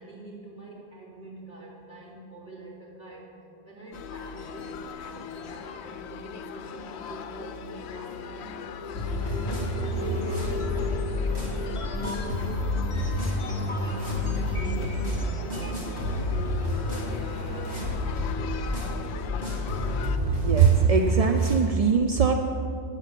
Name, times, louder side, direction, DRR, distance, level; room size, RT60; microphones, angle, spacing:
voice 1, 0.0-3.3 3.6-8.6 9.2-15.1 15.5-18.9, right 2 dB, 5° right, -6 dB, 3.5 m, -44 dB
sound 1, 3.9-20.2, left 7 dB, 80° left, 0.8 m, -39 dB
sound 2, 8.8-15.9, left 3 dB, 30° left, 1.3 m, -38 dB
sound 3, 8.9-21.6, left 1 dB, 70° right, 3.3 m, -30 dB
voice 2, 20.3-22.4, right 6 dB, 50° right, 4 dB, 0.4 m, -21 dB
9.6 x 8.1 x 7.5 m, 2.4 s
omnidirectional pair, 1.1 m